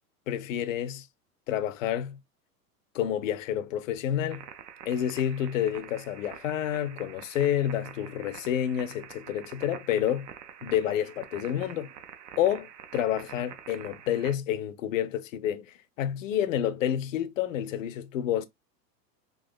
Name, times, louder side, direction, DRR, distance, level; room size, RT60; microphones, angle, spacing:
voice 1, 0.3-1.1 1.5-2.2 2.9-4.4 4.9-10.3 10.6-11.9 12.4-18.5, left 10 dB, 55° left, 0.5 m, -29 dB
sound 1, 4.3-14.4, right 8 dB, 75° right, 0.7 m, -46 dB
3.7 x 2.4 x 2.3 m
figure-of-eight pair, 100°, 50 cm